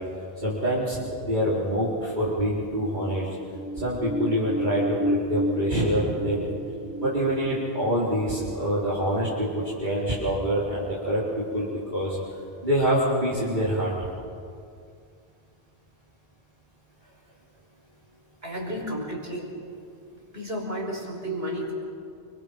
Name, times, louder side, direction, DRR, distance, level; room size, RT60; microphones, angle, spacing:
voice 1, 0.4-3.3 3.8-6.5 7.0-12.2 12.6-13.9, equal, 50° right, -8 dB, 4.5 m, -26 dB
sound 1, 3.4-9.7 10.1-10.2, equal, 10° right, 1.4 m, -32 dB
voice 2, 18.4-19.5 20.3-21.7, equal, 75° right, -1 dB, 5.4 m, -32 dB
29.5 x 25.0 x 5.3 m, 2.4 s
omnidirectional pair, 1.0 m